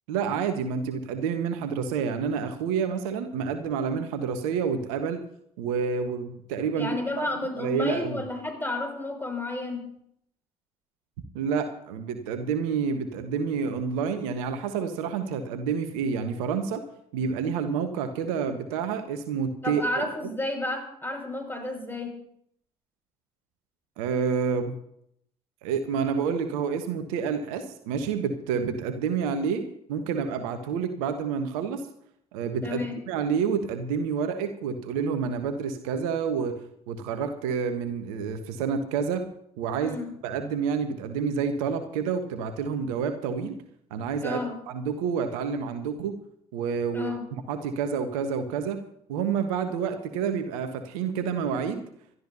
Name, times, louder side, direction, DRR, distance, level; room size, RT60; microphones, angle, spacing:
voice 1, 0.1-5.2 5.6-7.3 7.6-8.2 11.3-16.8 17.1-19.8 24.0-24.7 25.6-29.6 29.9-31.8 32.3-32.8 33.1-36.6 36.9-39.3 39.6-40.0 40.2-43.5 43.9-44.4 44.7-46.2 46.5-47.1 47.5-48.8 49.1-51.8, right 6 dB, 75° right, 8 dB, 1.3 m, -28 dB
voice 2, 6.8-9.8 19.6-22.2 32.6-33.0 39.8-40.1 44.2-44.5 46.9-47.3, left 2 dB, 10° left, 3 dB, 5.8 m, -31 dB
27.0 x 12.5 x 2.8 m, 0.71 s
figure-of-eight pair, 50°, 19 cm